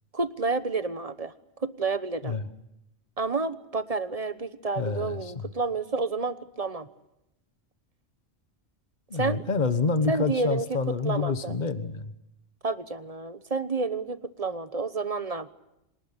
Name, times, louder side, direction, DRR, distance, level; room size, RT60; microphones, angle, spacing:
voice 1, 0.1-1.3 1.6-2.3 3.2-6.9 9.1-9.4 10.1-10.8 11.0-11.5 12.6-15.5, right 3 dB, 35° right, 13 dB, 1.1 m, -30 dB
voice 2, 4.8-5.5 9.1-12.1, left 4 dB, 40° left, 12 dB, 1.4 m, -28 dB
26.5 x 19.5 x 9.7 m, 0.88 s
omnidirectional pair, 1.2 m